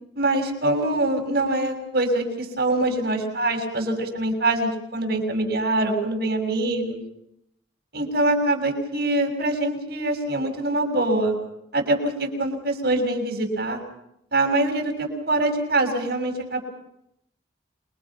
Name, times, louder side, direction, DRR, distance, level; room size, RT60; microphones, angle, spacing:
voice 1, 0.1-7.0 7.9-11.4 11.7-13.8 14.3-16.6, right 2 dB, 55° right, 3 dB, 6.5 m, -24 dB
28.5 x 23.0 x 5.9 m, 0.79 s
head